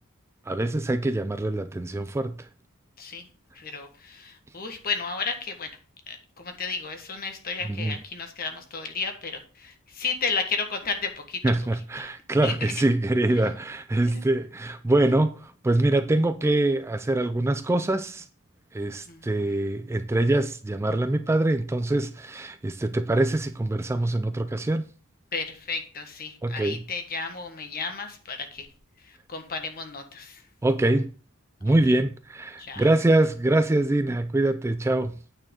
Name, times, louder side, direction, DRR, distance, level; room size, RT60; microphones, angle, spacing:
voice 1, 0.5-2.4 7.7-7.9 11.4-18.3 18.7-24.9 26.4-26.8 30.6-31.1 31.6-35.2, right 2 dB, 10° right, 0.3 m, -24 dB
voice 2, 3.5-5.7 6.1-11.4 12.0-12.1 12.4-12.7 14.0-14.2 19.1-19.5 25.3-28.7 29.0-30.4 31.6-31.7 32.6-32.9, left 5 dB, 45° left, 1.4 m, -33 dB
8.8 x 6.4 x 3.8 m
head